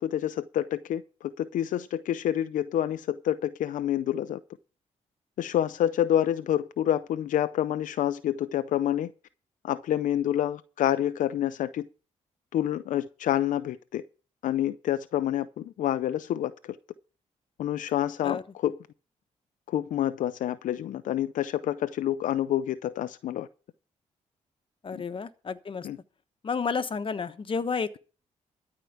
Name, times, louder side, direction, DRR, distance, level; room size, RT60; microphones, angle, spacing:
voice 1, 0.0-4.4 5.4-9.1 9.6-11.9 12.5-14.0 14.4-16.8 17.6-18.8 19.7-23.5 24.9-25.0 25.8-26.0, left 11 dB, 80° left, 0.6 m, -28 dB
voice 2, 24.8-25.9 26.4-28.0, left 5 dB, 40° left, 1.2 m, -31 dB
13.5 x 4.9 x 8.3 m
cardioid pair, 80°, 13 cm